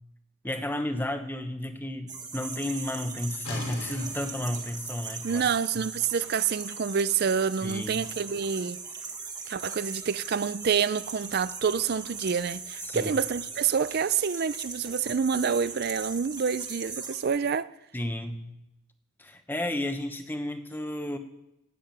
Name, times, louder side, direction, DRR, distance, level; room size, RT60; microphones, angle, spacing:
voice 1, 0.4-5.4 5.7-5.9 7.6-8.1 12.8-13.1 17.9-18.4 19.2-21.2, left 1 dB, 10° left, 1.0 m, -32 dB
sound 1, 2.1-17.2, right 4 dB, 20° right, 1.5 m, -39 dB
sound 2, 3.4-9.1, left 2 dB, 85° left, 3.4 m, -44 dB
voice 2, 5.2-8.8 9.5-17.7, right 6 dB, 45° right, 0.4 m, -27 dB
12.5 x 8.8 x 9.1 m
head